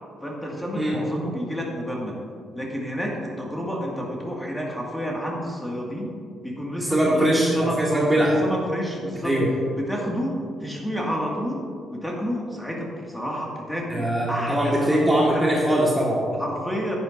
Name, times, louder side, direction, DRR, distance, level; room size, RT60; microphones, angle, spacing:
voice 1, 0.2-2.2 2.5-6.2 6.4-9.4 9.8-15.1 16.4-17.0, equal, 5° left, -2 dB, 2.2 m, -30 dB
voice 2, 6.8-8.4 9.2-9.5 13.9-16.3, right 1 dB, 10° right, -5 dB, 1.9 m, -21 dB
10.5 x 8.9 x 2.7 m, 2.3 s
supercardioid pair, 55°, 0 cm